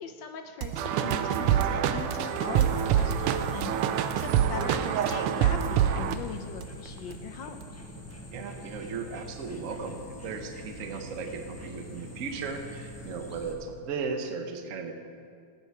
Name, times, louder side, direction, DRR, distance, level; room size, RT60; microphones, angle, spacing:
voice 1, 0.0-7.6, left 6 dB, 70° left, 6 dB, 1.3 m, -40 dB
sound 1, 0.6-8.2, right 9 dB, 70° right, 1.2 m, -38 dB
sound 2, 0.8-6.1, right 9 dB, 85° right, 1.6 m, -26 dB
sound 3, 2.2-13.5, left 1 dB, 10° left, 0.7 m, -44 dB
voice 2, 8.3-14.9, right 5 dB, 50° right, 5 dB, 1.0 m, -36 dB
16.5 x 9.2 x 4.7 m, 2.2 s
omnidirectional pair, 2.4 m